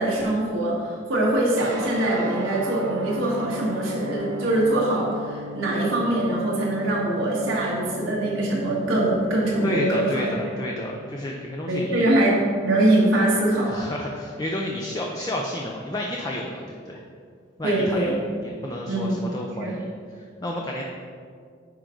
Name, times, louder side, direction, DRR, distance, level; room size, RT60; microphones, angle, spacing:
voice 1, 0.0-10.3 11.7-13.7 17.6-18.2 18.9-19.3 19.6-19.8, right 1 dB, 90° right, -5 dB, 1.6 m, -23 dB
sound 1, 1.5-11.9, equal, 70° right, 1.1 m, -38 dB
voice 2, 9.6-12.1 13.6-17.0 17.6-18.1 18.4-19.8 20.1-20.8, left 1 dB, 20° left, -1 dB, 0.5 m, -31 dB
9.3 x 4.9 x 3.9 m, 2.2 s
head